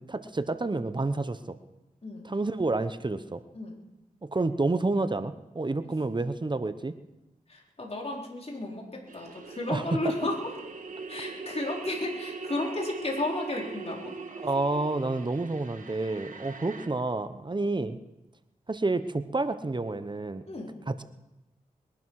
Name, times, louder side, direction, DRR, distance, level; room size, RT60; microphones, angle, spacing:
voice 1, 0.0-1.6 2.2-3.4 4.2-6.9 9.7-10.0 14.3-18.0 18.7-20.4 20.9-21.0, right 2 dB, 30° right, 12 dB, 1.0 m, -29 dB
voice 2, 7.5-10.3 11.1-14.0 20.5-20.8, left 2 dB, 45° left, -1 dB, 4.2 m, -33 dB
sound 1, 9.1-16.9, right 4 dB, 60° right, 1.7 m, -41 dB
22.0 x 11.5 x 4.8 m, 0.97 s
cardioid pair, 40°, 15 cm